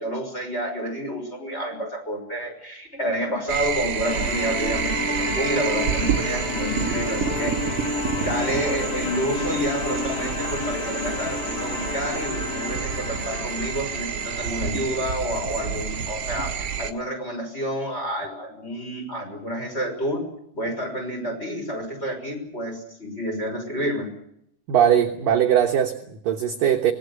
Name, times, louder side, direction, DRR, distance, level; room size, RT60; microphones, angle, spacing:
voice 1, 0.0-7.5 8.1-20.2 20.5-24.1, equal, 15° left, 3 dB, 6.1 m, -29 dB
sound 1, 3.5-16.9, right 7 dB, 85° right, 1.3 m, -29 dB
sound 2, 4.0-14.8, left 3 dB, 40° left, 3.2 m, -31 dB
voice 2, 24.7-26.9, right 9 dB, 70° right, 3 dB, 2.3 m, -20 dB
25.5 x 19.0 x 8.3 m, 0.75 s
omnidirectional pair, 5.5 m